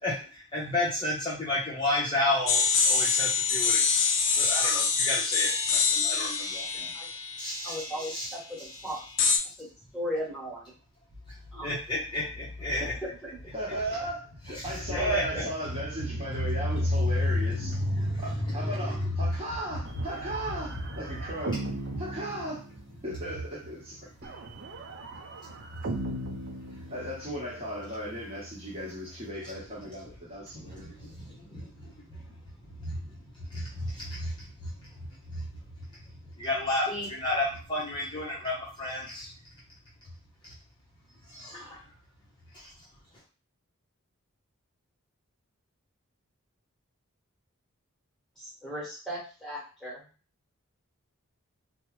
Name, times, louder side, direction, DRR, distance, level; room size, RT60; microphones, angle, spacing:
voice 1, 0.0-3.8 4.4-6.9 7.4-8.7 11.3-11.4 11.6-12.9 14.5-15.4 15.7-15.8 16.3-19.4 19.9-20.0 20.7-20.8 25.5-25.6 26.0-26.1 26.3-26.8 30.5-32.4 32.6-34.5 34.8-35.6 36.4-39.3 40.4-40.5 41.3-41.8 42.5-42.9, left 1 dB, 20° left, -6 dB, 0.7 m, -32 dB
sound 1, 2.5-8.2 9.2-9.4, left 5 dB, 60° left, 0.4 m, -26 dB
voice 2, 7.6-9.0 9.6-9.7 9.9-10.7 11.5-11.7 36.9-37.1 48.4-50.0, equal, ahead, -6 dB, 1.2 m, -36 dB
voice 3, 13.5-21.6 22.0-22.7 23.0-24.3 26.9-31.0, equal, 25° right, -5 dB, 1.0 m, -37 dB
sound 2, 19.8-23.1 24.2-27.5, right 2 dB, 50° right, 0.4 m, -38 dB
3.4 x 2.0 x 3.0 m, 0.36 s
head